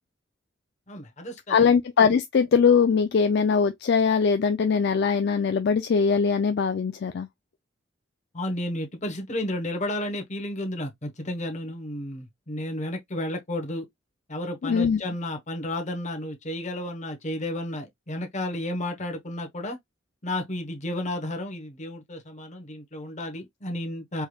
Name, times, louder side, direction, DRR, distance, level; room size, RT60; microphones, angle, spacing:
voice 1, 0.9-1.7 8.3-13.9 14.3-19.8 20.2-24.3, left 1 dB, 35° left, 1.1 m, -32 dB
voice 2, 1.5-7.3 14.6-15.0, left 6 dB, 55° left, 0.4 m, -21 dB
4.6 x 3.2 x 2.3 m
head